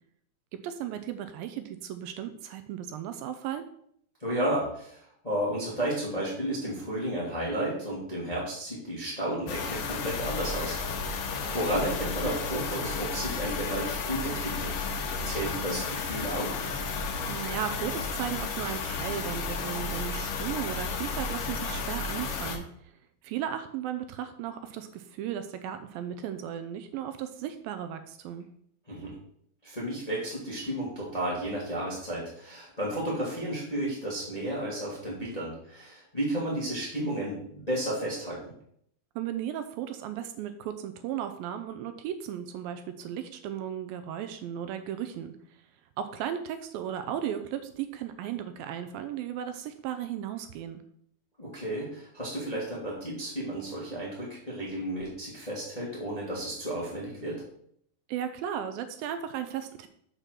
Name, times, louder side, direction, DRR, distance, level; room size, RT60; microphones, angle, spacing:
voice 1, 0.5-3.7 17.3-22.6 23.2-28.5 39.2-45.6 46.0-50.8 58.1-59.9, right 10 dB, 80° right, 9 dB, 2.2 m, -35 dB
voice 2, 4.2-14.7 15.2-16.7 28.9-29.1 29.6-38.5 51.4-57.4, right 1 dB, 20° left, -5 dB, 1.2 m, -33 dB
sound 1, 9.5-22.6, left 4 dB, 70° left, 2.4 m, -33 dB
6.6 x 4.1 x 6.1 m, 0.67 s
omnidirectional pair, 4.3 m